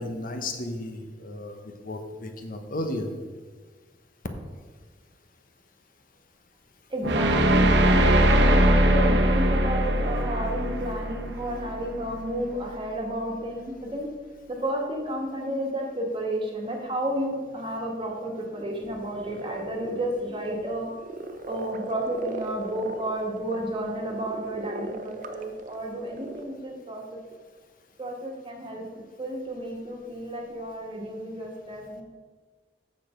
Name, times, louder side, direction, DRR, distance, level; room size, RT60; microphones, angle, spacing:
voice 1, 0.0-3.1, left 1 dB, 50° left, 6 dB, 1.1 m, -34 dB
voice 2, 6.9-14.1 14.5-20.9 21.5-27.2 28.0-32.0, right 1 dB, 30° right, 0 dB, 1.5 m, -31 dB
sound 1, 7.0-12.1, right 1 dB, 75° right, 0.9 m, -21 dB
sound 2, 18.8-26.4, right 2 dB, 45° right, 0.6 m, -40 dB
8.7 x 6.5 x 5.0 m, 1.4 s
head